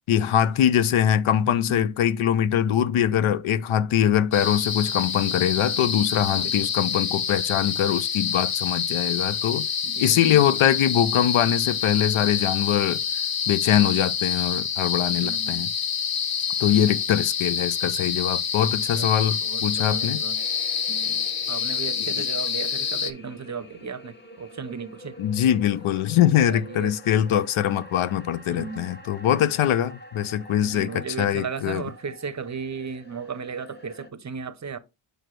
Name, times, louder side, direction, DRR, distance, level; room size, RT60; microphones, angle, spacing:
voice 1, 0.1-9.6 10.0-13.0 13.5-15.7 16.6-20.2 22.0-22.3 25.2-31.8, left 10 dB, 80° left, 0.6 m, -23 dB
voice 2, 1.5-1.9 6.3-6.5 9.8-10.4 15.2-15.6 18.9-20.4 20.9-25.2 26.5-26.9 28.5-28.9 30.6-34.8, right 5 dB, 35° right, 0.6 m, -35 dB
sound 1, 4.3-23.1, left 7 dB, 45° left, 0.8 m, -27 dB
sound 2, 20.3-34.1, equal, 20° left, 1.3 m, -47 dB
6.4 x 4.8 x 3.1 m
cardioid pair, 95°, 49 cm